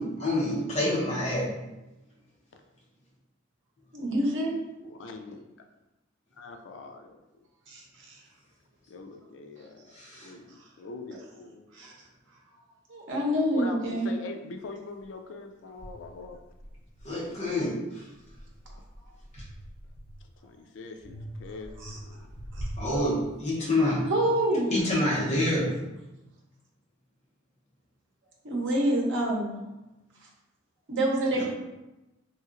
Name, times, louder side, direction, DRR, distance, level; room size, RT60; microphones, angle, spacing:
voice 1, 0.0-1.5 9.9-10.3 17.0-18.0 22.8-24.0 24.7-25.7 31.3-31.4, left 1 dB, 35° left, -5 dB, 0.8 m, -27 dB
voice 2, 3.9-4.5 7.7-7.8 8.1-8.2 11.7-11.9 12.9-14.1 21.8-22.0 24.1-24.7 28.4-29.6 30.9-31.4, right 1 dB, 70° right, -3 dB, 0.8 m, -26 dB
voice 3, 4.8-5.7 6.4-7.2 8.9-11.7 13.5-16.4 20.4-22.3, left 3 dB, 70° left, 5 dB, 0.4 m, -43 dB
sound 1, 15.0-15.1 15.8-17.6 18.1-20.4 21.0-23.8, equal, 50° right, 1.1 m, -43 dB
3.0 x 2.8 x 2.5 m, 1.0 s
head